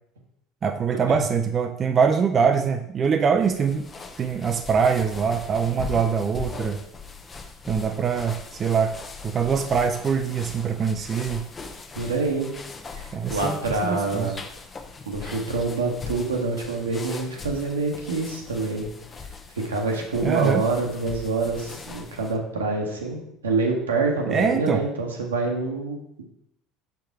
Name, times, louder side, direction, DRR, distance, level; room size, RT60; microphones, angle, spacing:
voice 1, 0.6-3.9 4.2-6.8 7.7-8.9 9.2-11.5 13.1-14.3 20.2-20.6 24.3-24.8, right 6 dB, 40° right, 6 dB, 0.4 m, -23 dB
sound 1, 3.4-22.4, left 4 dB, 30° left, 0.8 m, -40 dB
voice 2, 12.0-12.5 12.9-14.4 15.1-18.9 19.6-26.2, right 3 dB, 85° right, 1 dB, 1.1 m, -26 dB
5.9 x 4.7 x 4.7 m, 0.75 s
hypercardioid pair, 65°, 0 cm